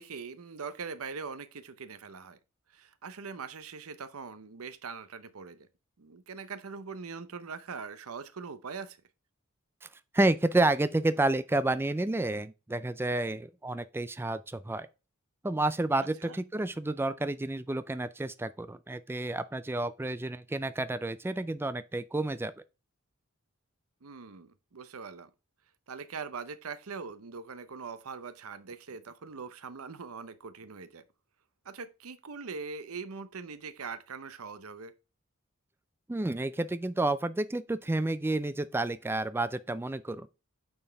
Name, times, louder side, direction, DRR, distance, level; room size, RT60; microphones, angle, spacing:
voice 1, 0.0-2.4 2.7-5.7 6.0-9.0 16.2-16.4 24.0-25.3 25.9-31.0 31.6-34.9, right 5 dB, 85° right, 0.8 m, -42 dB
voice 2, 10.1-14.9 15.4-22.5 36.1-40.3, right 2 dB, 10° right, 0.3 m, -30 dB
8.6 x 4.4 x 3.4 m
head